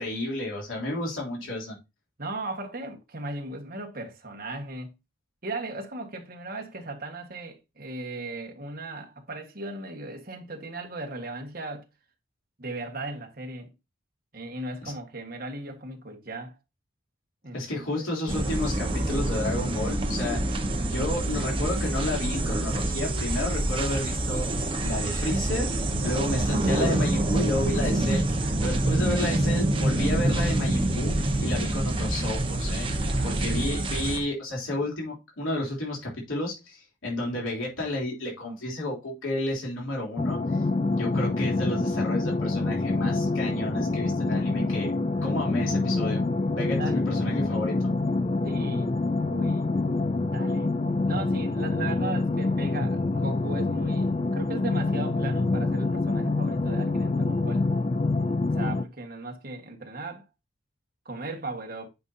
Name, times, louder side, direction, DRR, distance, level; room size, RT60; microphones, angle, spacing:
voice 1, 0.0-1.8 17.5-25.7 26.0-28.2 28.6-40.4 41.0-44.9 45.2-46.2 46.5-47.7, left 1 dB, 90° left, 3.2 m, -31 dB
voice 2, 2.2-4.9 5.4-11.9 12.6-13.7 14.3-16.5 17.4-18.1 28.4-29.4 33.0-33.4 45.2-45.4 46.8-47.0 48.4-48.9 49.2-49.7 50.3-50.7 51.1-57.7 58.5-60.2 61.0-61.9, right 2 dB, 45° right, 1.5 m, -37 dB
sound 1, 18.3-34.2, right 1 dB, 25° right, 1.1 m, -26 dB
sound 2, 40.2-58.8, left 3 dB, 30° left, 0.4 m, -26 dB
9.3 x 5.4 x 2.7 m
head